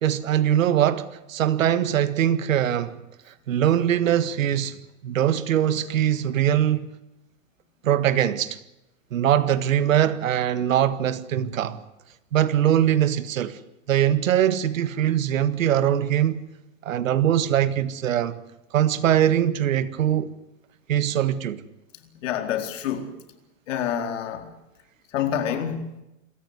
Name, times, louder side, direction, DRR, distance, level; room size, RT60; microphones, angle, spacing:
voice 1, 0.0-3.0 3.5-4.8 5.0-6.9 7.8-8.6 9.1-11.8 12.3-13.6 13.9-16.4 16.8-18.4 18.7-20.4 20.9-21.6, right 10 dB, 85° right, 1.7 m, -22 dB
voice 2, 22.2-23.1 23.7-24.5 25.1-25.9, left 9 dB, 70° left, 4.3 m, -27 dB
27.0 x 15.0 x 9.4 m
hypercardioid pair, 125°, 38 cm